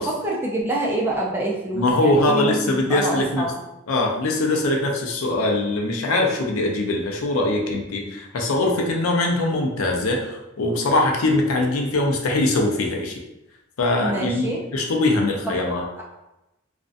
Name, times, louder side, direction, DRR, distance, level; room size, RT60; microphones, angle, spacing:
voice 1, 0.0-3.6 14.0-14.6 15.5-16.0, right 1 dB, 10° right, -3 dB, 0.3 m, -27 dB
voice 2, 1.7-3.4 3.9-13.1 13.8-15.8, left 2 dB, 85° left, 1 dB, 0.5 m, -22 dB
2.5 x 2.1 x 2.5 m, 0.93 s
head